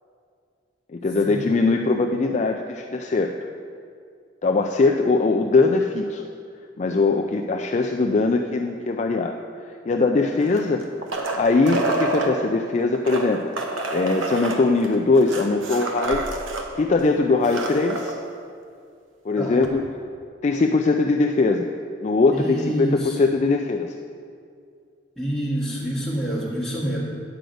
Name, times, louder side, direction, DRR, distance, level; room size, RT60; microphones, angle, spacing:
voice 1, 0.9-3.3 4.4-6.2 6.8-9.4 9.6-10.8 11.4-16.2 16.8-18.1 19.2-19.8 20.4-21.7 22.0-23.9, left 3 dB, 35° left, 3 dB, 0.3 m, -21 dB
sound 1, 10.4-12.3 12.9-16.7 17.0-17.1 17.3-18.1 19.6-19.7, right 2 dB, 80° right, 1.0 m, -28 dB
voice 2, 22.3-23.2 25.2-27.0, right 1 dB, 5° left, -7 dB, 1.8 m, -27 dB
9.3 x 5.1 x 7.8 m, 2.3 s
head